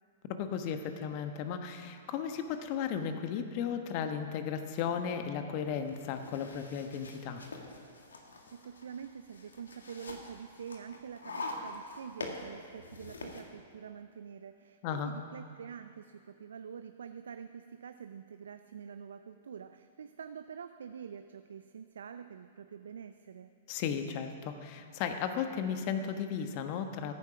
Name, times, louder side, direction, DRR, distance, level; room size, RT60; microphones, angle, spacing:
voice 1, 0.3-7.4 14.8-15.1 23.7-27.1, left 7 dB, 45° left, 7 dB, 1.2 m, -35 dB
sound 1, 5.7-13.4, left 2 dB, 85° left, 1.8 m, -45 dB
voice 2, 8.5-23.5, right 7 dB, 75° right, 9 dB, 0.5 m, -46 dB
14.5 x 9.9 x 5.8 m, 2.3 s
hypercardioid pair, 115°, 0 cm